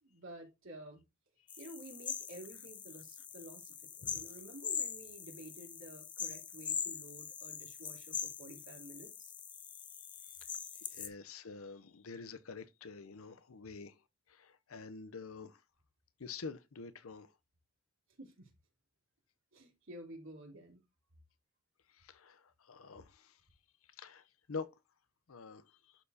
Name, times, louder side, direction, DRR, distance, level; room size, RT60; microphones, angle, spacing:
voice 1, 0.0-1.0 1.6-9.3 18.2-18.5 19.5-20.8, right 1 dB, 65° right, 3.4 m, -52 dB
sound 1, 1.5-11.1, left 7 dB, 20° left, 0.6 m, -42 dB
voice 2, 10.9-13.9 14.3-15.6 16.2-17.3 22.0-23.3 24.0-24.7 25.3-25.6, left 4 dB, 80° left, 0.7 m, -47 dB
11.5 x 4.6 x 2.7 m
head